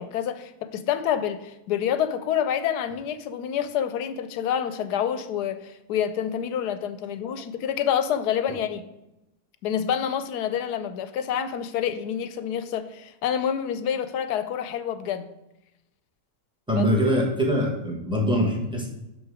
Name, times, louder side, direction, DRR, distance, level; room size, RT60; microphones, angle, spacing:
voice 1, 0.0-8.9 9.6-15.3 16.7-16.9, left 9 dB, 80° left, 10 dB, 1.1 m, -27 dB
voice 2, 16.7-18.9, equal, 5° right, -1 dB, 1.3 m, -23 dB
6.2 x 6.0 x 4.8 m, 0.93 s
omnidirectional pair, 1.7 m